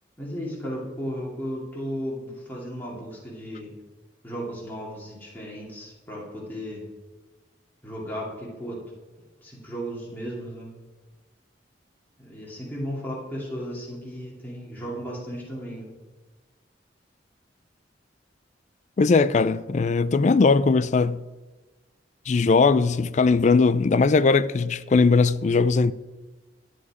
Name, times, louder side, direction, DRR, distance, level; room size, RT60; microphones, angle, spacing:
voice 1, 0.2-3.7 4.2-6.8 7.8-8.8 9.4-10.7 12.2-15.9, equal, 10° left, 2.5 m, -35 dB
voice 2, 19.0-21.2 22.3-25.9, left 4 dB, 40° left, 0.3 m, -19 dB
12.0 x 9.7 x 4.9 m
head